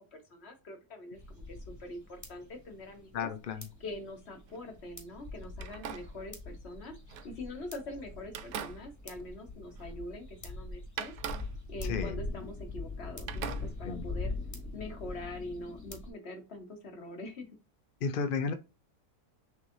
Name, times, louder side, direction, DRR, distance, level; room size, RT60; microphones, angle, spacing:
voice 1, 0.0-3.3 3.8-6.9 7.2-11.1 11.7-14.3 14.7-17.5, left 2 dB, 45° left, 1.5 m, -44 dB
sound 1, 1.1-16.1, left 2 dB, 10° left, 1.5 m, -43 dB
voice 2, 3.1-3.6 11.9-12.1 13.9-14.0 18.0-18.5, left 5 dB, 70° left, 0.5 m, -32 dB
sound 2, 3.5-4.7 5.5-7.8 8.3-10.2 10.4-10.5 11.0-13.0 13.3-14.2, right 8 dB, 70° right, 1.0 m, -44 dB
6.6 x 3.1 x 2.6 m
omnidirectional pair, 1.6 m